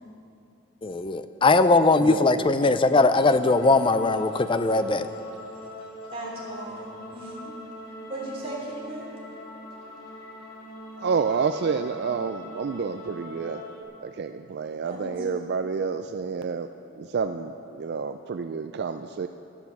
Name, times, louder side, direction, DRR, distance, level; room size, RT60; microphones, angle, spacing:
voice 1, 0.8-5.1, left 3 dB, 20° left, 11 dB, 0.4 m, -20 dB
voice 2, 1.9-2.8 11.0-13.6 14.0-16.7 16.9-19.3, right 5 dB, 45° right, 8 dB, 0.3 m, -29 dB
sound 1, 3.1-13.8, left 1 dB, 85° left, 2.9 m, -43 dB
voice 3, 6.1-7.6 8.1-9.1 14.8-15.1, right 1 dB, 25° right, -4 dB, 3.4 m, -37 dB
13.0 x 12.0 x 7.1 m, 2.8 s
head